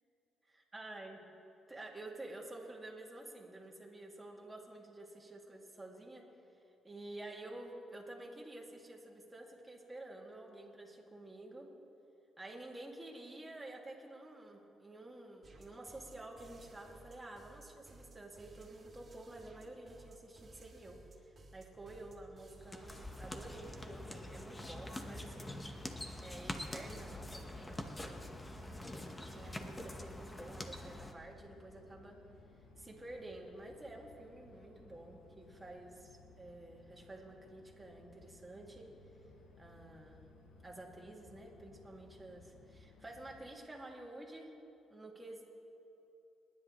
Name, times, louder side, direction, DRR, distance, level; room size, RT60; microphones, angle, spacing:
voice 1, 0.7-1.2 1.7-6.3 6.8-11.7 12.4-25.6 26.2-28.3 29.3-32.2 32.8-38.9 39.6-40.3 40.6-44.5 44.9-45.4, right 2 dB, 15° right, -2 dB, 2.4 m, -50 dB
sound 1, 15.4-23.8, right 3 dB, 35° right, 2.4 m, -58 dB
sound 2, 22.5-31.1, left 1 dB, 15° left, 1.2 m, -45 dB
sound 3, 26.9-43.5, left 3 dB, 75° left, 1.3 m, -61 dB
29.0 x 10.5 x 3.2 m, 3.0 s
cardioid pair, 90°, 0 cm